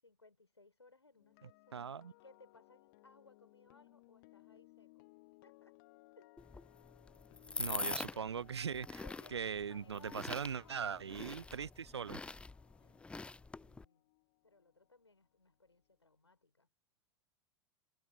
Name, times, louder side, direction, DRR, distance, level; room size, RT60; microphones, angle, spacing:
voice 1, 0.0-5.1 5.4-5.8 6.1-6.3 9.0-11.0 12.8-13.2 13.6-14.0 14.4-16.7, left 3 dB, 85° left, 6.8 m, -64 dB
sound 1, 1.1-15.2 15.5-15.8, left 24 dB, 50° left, 1.4 m, -64 dB
voice 2, 1.7-2.1 7.6-9.0 9.3-12.2, right 7 dB, 75° right, 0.6 m, -40 dB
sound 2, 6.4-13.8, left 3 dB, 10° left, 0.4 m, -45 dB
figure-of-eight pair, 80°, 14 cm